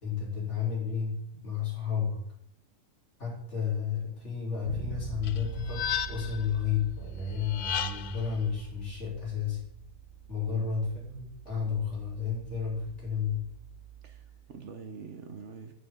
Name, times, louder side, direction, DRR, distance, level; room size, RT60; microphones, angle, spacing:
voice 1, 0.0-2.2 3.2-9.6 10.3-13.4, left 7 dB, 55° left, -5 dB, 4.0 m, -32 dB
Bass guitar, 4.7-14.5, right 11 dB, 85° right, 1.2 m, -44 dB
sound 1, 5.2-6.5 7.4-8.3, left 9 dB, 85° left, 0.4 m, -34 dB
voice 2, 14.0-15.7, right 5 dB, 60° right, 7 dB, 1.1 m, -45 dB
9.2 x 8.8 x 3.7 m, 0.69 s
omnidirectional pair, 1.5 m